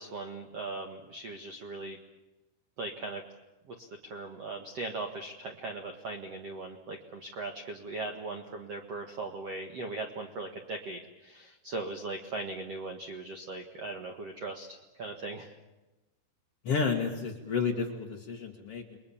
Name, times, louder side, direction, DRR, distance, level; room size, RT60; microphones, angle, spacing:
voice 1, 0.0-2.0 2.8-3.2 3.7-15.5, right 3 dB, 65° right, 3 dB, 1.6 m, -39 dB
voice 2, 16.6-19.0, left 5 dB, 55° left, 0 dB, 1.7 m, -31 dB
30.0 x 22.0 x 7.3 m, 1.1 s
omnidirectional pair, 5.6 m